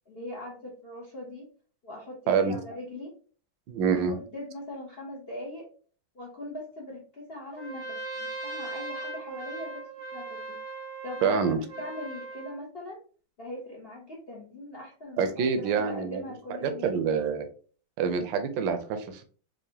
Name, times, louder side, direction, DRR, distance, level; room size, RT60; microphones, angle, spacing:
voice 1, 0.1-1.5 1.8-3.1 3.9-5.7 6.1-9.9 10.1-10.6 11.0-13.0 13.4-16.9, left 1 dB, 55° left, -3 dB, 0.6 m, -41 dB
voice 2, 3.7-4.1 11.2-11.6 15.2-16.2 16.6-17.5 18.0-19.3, right 6 dB, 75° right, 8 dB, 1.3 m, -26 dB
Trumpet, 7.5-12.6, right 3 dB, 60° right, 0.7 m, -38 dB
4.6 x 2.5 x 2.8 m, 0.41 s
omnidirectional pair, 2.2 m